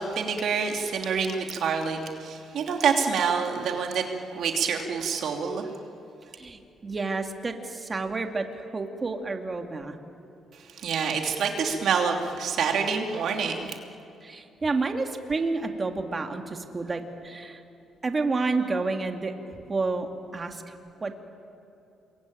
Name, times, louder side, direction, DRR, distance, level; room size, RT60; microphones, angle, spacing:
voice 1, 0.0-4.0 4.3-5.7 10.8-13.7, right 6 dB, 70° right, 3 dB, 2.8 m, -27 dB
voice 2, 6.4-9.9 14.2-17.6 18.0-19.3 19.7-20.7 21.0-21.1, right 3 dB, 30° right, 4 dB, 2.4 m, -30 dB
28.0 x 22.0 x 9.1 m, 2.8 s
cardioid pair, 90°, 0 cm